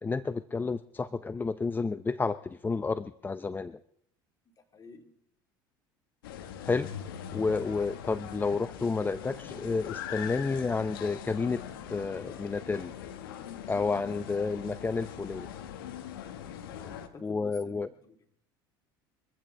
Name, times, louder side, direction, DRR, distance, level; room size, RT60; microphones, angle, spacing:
voice 1, 0.0-3.8 6.7-6.9 7.3-11.6 11.9-12.9 13.7-15.5 17.2-17.9, left 4 dB, 15° left, 15 dB, 0.6 m, -30 dB
voice 2, 4.7-5.1 16.7-18.4, left 4 dB, 30° left, 4 dB, 3.1 m, -51 dB
sound 1, 6.2-17.1, left 9 dB, 80° left, 1.5 m, -42 dB
24.0 x 15.0 x 3.3 m, 0.72 s
hypercardioid pair, 80°, 12 cm